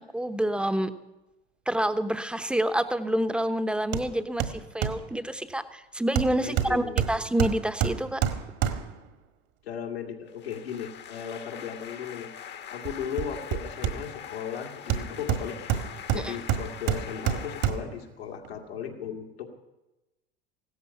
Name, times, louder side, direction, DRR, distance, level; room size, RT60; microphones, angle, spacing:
voice 1, 0.1-0.9 1.7-8.2 16.1-16.3, right 1 dB, 5° right, 11 dB, 0.9 m, -28 dB
Hammer, 3.9-4.1 4.4-5.1 6.2-9.1 12.8-14.3 14.9-18.0 18.4-18.5, right 9 dB, 55° right, 1.7 m, -29 dB
voice 2, 6.4-7.0 9.6-15.7 16.1-19.5, left 8 dB, 80° left, 2 dB, 2.3 m, -36 dB
sound 1, 10.3-17.7, left 9 dB, 35° left, 1.1 m, -43 dB
16.0 x 13.0 x 5.7 m, 1.0 s
figure-of-eight pair, 75°, 30 cm